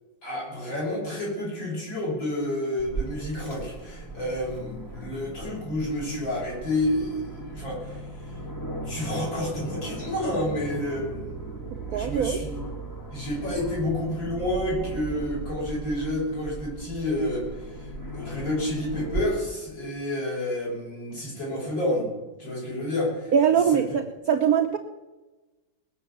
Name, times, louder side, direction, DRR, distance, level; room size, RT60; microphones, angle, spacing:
voice 1, 0.2-8.0 8.8-11.4 11.9-12.6 13.1-22.1 22.4-23.3 23.7-23.8, left 1 dB, 85° left, -5 dB, 7.4 m, -29 dB
Aircraft, 2.8-19.2, right 3 dB, 10° left, 1.7 m, -37 dB
voice 2, 11.9-12.4 23.3-24.8, right 8 dB, 60° right, 4 dB, 1.2 m, -22 dB
20.0 x 6.9 x 8.5 m, 1.1 s
omnidirectional pair, 2.0 m